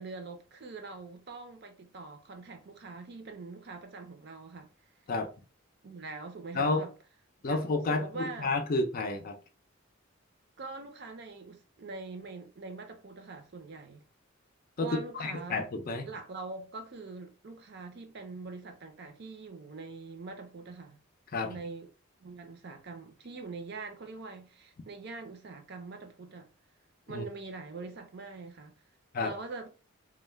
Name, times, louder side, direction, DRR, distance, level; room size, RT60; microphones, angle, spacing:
voice 1, 0.0-4.7 5.8-6.9 7.4-8.5 10.6-14.0 14.8-15.6 16.0-21.0 21.4-21.9 22.2-26.5 27.1-28.7 29.2-29.7, right 3 dB, 50° right, 0.5 m, -43 dB
voice 2, 6.5-6.9 7.4-9.4 14.8-14.9 15.1-16.1 21.3-21.5 27.1-27.2 29.1-29.3, left 3 dB, 40° left, 0.4 m, -30 dB
2.2 x 2.1 x 3.2 m
head